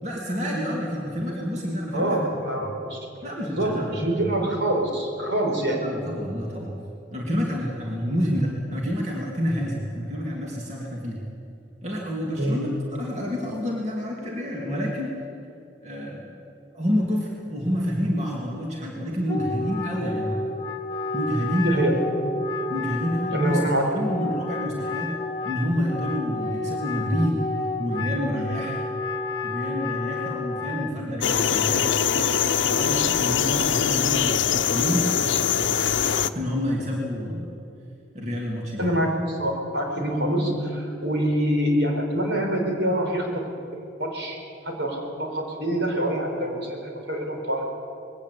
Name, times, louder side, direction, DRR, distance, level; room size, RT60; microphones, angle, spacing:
voice 1, 0.0-2.2 3.2-4.2 5.8-6.8 7.1-11.2 11.8-15.2 15.8-16.2 16.7-20.5 21.1-21.9 22.7-25.1 25.4-27.5 27.8-28.8 29.4-31.9 32.7-35.1 36.3-37.5 38.1-39.0, equal, 35° right, -3 dB, 2.6 m, -28 dB
voice 2, 1.9-3.0 3.4-5.8 12.4-12.6 21.6-22.0 23.3-23.8 38.8-43.5 44.0-44.4 44.6-47.7, right 1 dB, 70° right, 1 dB, 4.5 m, -25 dB
Wind instrument woodwind instrument, 19.2-30.9, left 3 dB, 25° left, 1.5 m, -31 dB
sound 1, 31.2-36.3, left 7 dB, 85° left, 0.7 m, -23 dB
21.0 x 17.5 x 8.3 m, 2.6 s
head